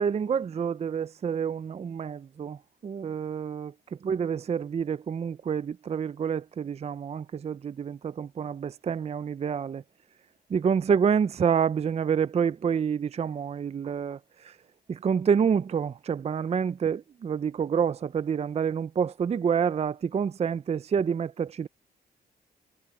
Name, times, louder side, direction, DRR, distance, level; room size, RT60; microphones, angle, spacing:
voice 1, 0.0-3.7 4.0-9.8 10.5-14.6 14.9-21.7, right 7 dB, 40° right, 0.5 m, -28 dB
cardioid pair, 80°, 17 cm